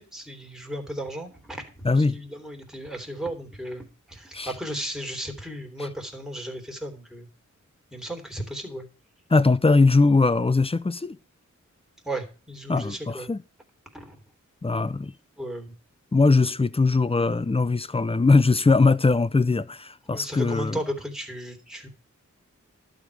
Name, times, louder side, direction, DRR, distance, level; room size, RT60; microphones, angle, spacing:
voice 1, 0.0-7.3 7.9-8.8 12.0-13.3 13.9-14.2 15.4-15.7 20.1-21.9, right 1 dB, ahead, 3.3 m, -35 dB
voice 2, 1.8-2.2 4.3-4.5 5.8-5.9 9.3-11.2 12.7-13.4 14.6-15.1 16.1-20.8, left 3 dB, 20° left, 0.6 m, -21 dB
12.0 x 5.3 x 8.3 m
wide cardioid pair, 65°, 30 cm